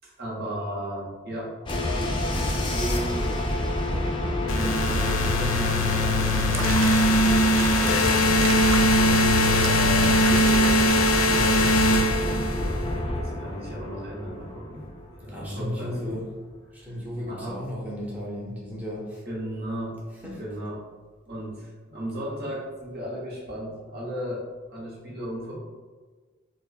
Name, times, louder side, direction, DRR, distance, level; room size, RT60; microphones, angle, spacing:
voice 1, 0.0-1.5 2.7-3.4 4.4-8.1 9.3-10.8 11.2-12.0 12.9-14.9 15.2-16.2 17.3-17.6 19.3-20.0 20.4-20.8 21.3-25.6, equal, 50° right, -4 dB, 1.0 m, -35 dB
sound 1, 1.7-15.6, left 1 dB, 25° left, 0.4 m, -28 dB
sound 2, 4.5-12.8, left 1 dB, 85° left, 0.4 m, -21 dB
Water / Bathtub (filling or washing), 6.3-11.8, right 5 dB, 75° right, 0.4 m, -36 dB
voice 2, 11.3-11.7 15.3-16.2 16.7-19.2 20.2-20.4, equal, 10° right, -5 dB, 0.7 m, -34 dB
3.1 x 2.2 x 4.1 m, 1.4 s
head